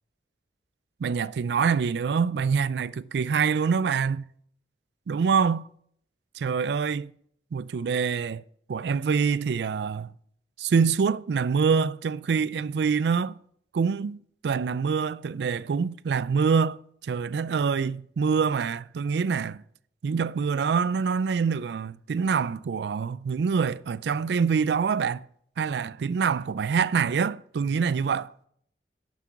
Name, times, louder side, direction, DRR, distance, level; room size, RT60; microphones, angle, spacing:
voice 1, 1.0-4.3 5.1-5.6 6.4-7.1 7.5-8.4 8.7-10.1 10.6-13.4 13.7-14.2 14.4-19.6 20.0-25.3 25.6-28.3, right 6 dB, 75° right, 0.4 m, -25 dB
11.5 x 6.1 x 7.1 m
head